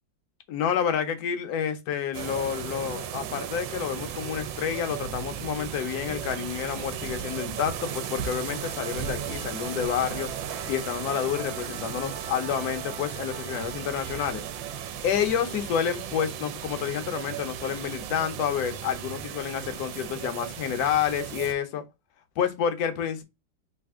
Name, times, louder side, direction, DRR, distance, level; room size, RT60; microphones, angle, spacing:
voice 1, 0.5-10.3 10.7-14.4 14.8-21.8 22.4-23.2, left 8 dB, 65° left, 1.1 m, -29 dB
sound 1, 2.1-21.5, right 9 dB, 80° right, 1.3 m, -36 dB
Musical instrument, 7.1-14.9, right 3 dB, 30° right, 0.6 m, -43 dB
3.4 x 2.5 x 3.5 m
omnidirectional pair, 2.0 m